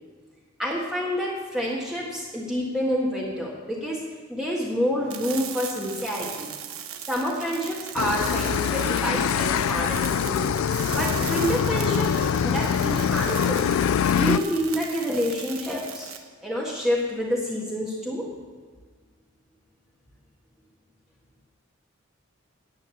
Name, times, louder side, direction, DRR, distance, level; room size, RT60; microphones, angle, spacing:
voice 1, 0.6-4.0 4.3-6.5 7.1-12.1 12.4-13.6 14.1-16.1 16.4-18.2, equal, ahead, -5 dB, 1.6 m, -28 dB
sound 1, 5.1-16.2, right 9 dB, 80° right, 1.1 m, -38 dB
sound 2, 8.0-14.4, left 8 dB, 75° left, 0.3 m, -24 dB
10.5 x 9.1 x 7.1 m, 1.5 s
head